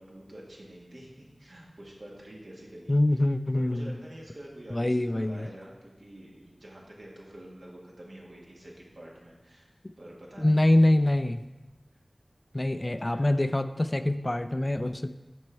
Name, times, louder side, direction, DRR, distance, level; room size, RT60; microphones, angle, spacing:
voice 1, 0.0-3.2 3.5-9.7 10.0-10.6, right 1 dB, 75° right, -3 dB, 1.5 m, -47 dB
voice 2, 2.9-4.0 4.7-5.5 10.4-11.4 12.5-15.1, left 1 dB, 35° left, 11 dB, 0.3 m, -24 dB
6.2 x 5.2 x 4.5 m, 1.1 s
wide cardioid pair, 40°, 0 cm